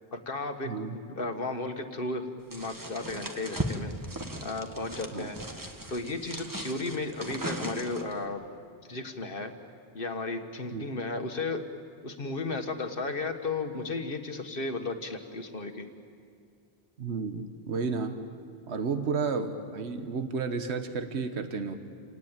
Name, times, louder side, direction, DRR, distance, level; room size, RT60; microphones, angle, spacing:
voice 1, 0.1-3.9 4.4-5.4 5.9-8.4 8.9-9.5 9.9-11.6 12.0-15.9, left 3 dB, 55° left, 6 dB, 1.7 m, -34 dB
voice 2, 0.6-1.0 5.1-5.3 10.7-10.8 17.0-18.2 18.7-21.8, right 5 dB, 75° right, 8 dB, 1.5 m, -32 dB
sound 1, 2.5-8.2, right 1 dB, 20° right, 1.5 m, -37 dB
28.5 x 18.0 x 9.0 m, 2.4 s
omnidirectional pair, 1.1 m